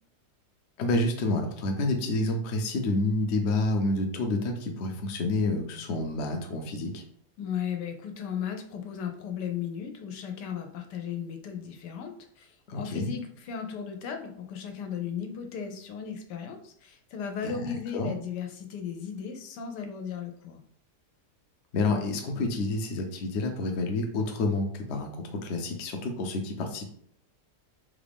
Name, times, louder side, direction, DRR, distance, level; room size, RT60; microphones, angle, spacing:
voice 1, 0.8-7.0 12.7-13.1 17.4-18.1 21.7-26.9, left 2 dB, 65° left, 4 dB, 0.7 m, -29 dB
voice 2, 7.4-20.6, left 7 dB, 85° left, 5 dB, 1.2 m, -36 dB
3.4 x 2.4 x 3.4 m, 0.64 s
omnidirectional pair, 1.8 m